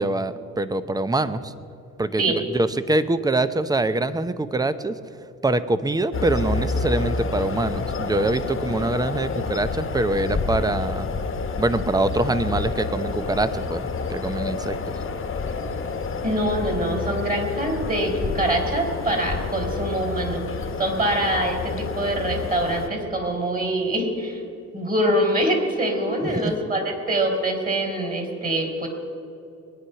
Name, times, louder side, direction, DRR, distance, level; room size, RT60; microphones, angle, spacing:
voice 1, 0.0-1.5 2.0-5.0 5.4-11.1 11.6-14.8 26.3-26.6, right 2 dB, 15° right, 13 dB, 0.7 m, -24 dB
sound 1, 6.1-22.9, left 4 dB, 45° left, 1.4 m, -29 dB
voice 2, 16.2-24.4 24.7-28.9, right 1 dB, 30° right, 3 dB, 3.8 m, -24 dB
21.5 x 9.7 x 5.8 m, 2.7 s
cardioid pair, 90°, 30 cm